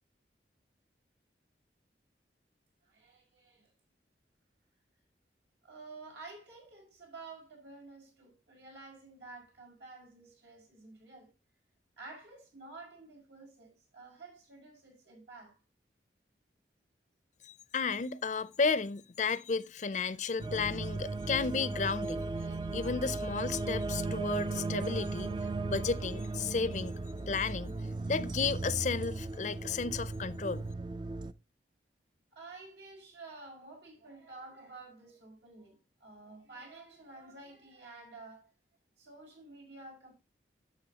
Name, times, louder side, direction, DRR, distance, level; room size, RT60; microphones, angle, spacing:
voice 1, 2.9-3.7 5.6-11.3 12.0-15.6 23.2-23.3 32.3-38.5 39.0-40.1, right 3 dB, 80° right, 5.5 m, -51 dB
voice 2, 17.4-22.3 22.7-25.3 25.7-27.0 27.3-27.7 28.1-30.7, left 5 dB, 40° left, 0.5 m, -33 dB
sound 1, 20.4-31.3, right 3 dB, 25° right, 0.4 m, -36 dB
11.5 x 7.3 x 2.8 m
head